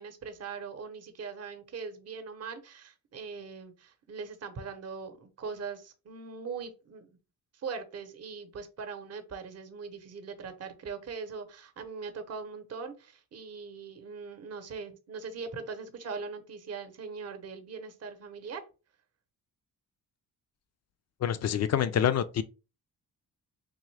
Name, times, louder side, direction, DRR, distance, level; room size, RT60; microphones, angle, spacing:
voice 1, 0.0-7.1 7.5-18.6, right 5 dB, 45° right, 0.8 m, -41 dB
voice 2, 21.2-22.4, left 9 dB, 45° left, 0.4 m, -26 dB
3.7 x 3.0 x 3.2 m
cardioid pair, 115°, 36 cm